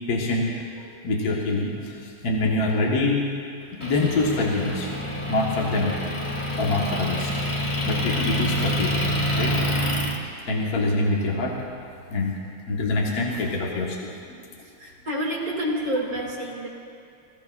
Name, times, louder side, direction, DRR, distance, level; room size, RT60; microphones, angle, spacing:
voice 1, 0.1-3.2 3.7-4.9 5.3-5.9 6.6-7.3 7.8-8.9 9.3-9.5 10.5-11.6 12.1-12.4 12.7-14.1, left 2 dB, 50° left, -2 dB, 1.6 m, -25 dB
Motor vehicle (road) / Engine, 3.8-10.2, equal, 30° left, 0.6 m, -27 dB
voice 2, 14.6-16.7, equal, 45° right, -2 dB, 2.7 m, -28 dB
20.5 x 15.5 x 2.4 m, 2.4 s
omnidirectional pair, 2.3 m